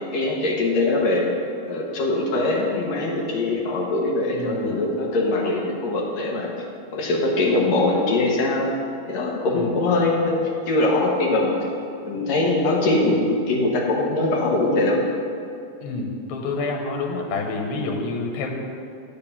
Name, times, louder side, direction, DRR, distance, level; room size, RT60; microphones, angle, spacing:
voice 1, 0.1-1.3 1.6-6.5 6.9-8.7 9.1-10.4 10.7-11.6 12.0-15.0, left 2 dB, 65° left, -2 dB, 1.9 m, -22 dB
voice 2, 4.3-4.7 9.5-9.7 15.8-18.5, left 3 dB, 85° left, 1 dB, 2.8 m, -28 dB
9.0 x 5.5 x 7.0 m, 2.4 s
omnidirectional pair, 4.2 m